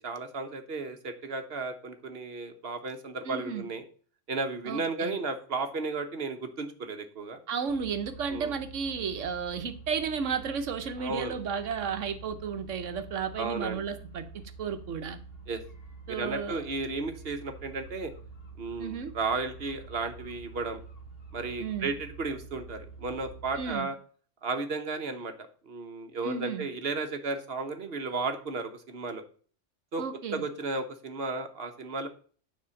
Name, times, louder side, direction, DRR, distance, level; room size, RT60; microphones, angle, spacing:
voice 1, 0.0-3.8 4.3-7.4 8.3-8.5 11.0-11.4 13.4-13.8 15.5-15.6 16.1-18.1 18.6-20.8 21.3-23.9 24.4-29.2 29.9-30.0 30.3-32.1, right 3 dB, 55° right, 1.4 m, -34 dB
voice 2, 3.2-3.7 4.7-5.2 7.5-15.2 16.1-16.6 18.8-19.1 21.6-21.9 23.6-23.9 26.2-26.7 30.0-30.4, right 6 dB, 85° right, 1.3 m, -33 dB
sound 1, 7.7-23.7, right 4 dB, 55° left, 1.5 m, -47 dB
9.4 x 4.3 x 6.9 m
omnidirectional pair, 1.2 m